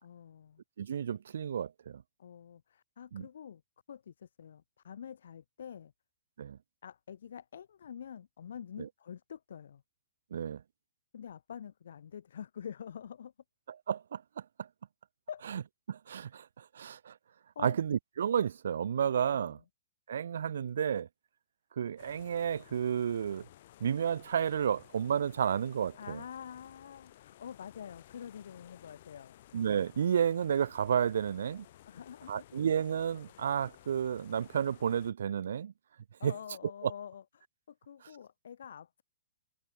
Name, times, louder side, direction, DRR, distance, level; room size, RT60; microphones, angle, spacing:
voice 1, 0.0-0.6 2.2-3.6 3.9-5.9 6.8-9.8 11.1-13.3 15.3-15.5 17.5-17.8 19.3-19.6 25.9-29.4 31.9-32.4 36.2-39.0, left 8 dB, 75° left, 1.7 m, -47 dB
voice 2, 0.8-2.0 3.1-3.3 6.4-6.6 8.8-8.9 10.3-10.6 13.9-14.2 15.5-15.6 15.9-17.1 17.6-19.6 20.1-21.1 21.8-23.5 23.8-26.2 29.5-31.7 32.3-35.7 36.2-36.3, right 8 dB, 80° right, 0.4 m, -31 dB
sound 1, 22.0-35.1, left 14 dB, 50° left, 5.6 m, -57 dB
hypercardioid pair, 155°, 0 cm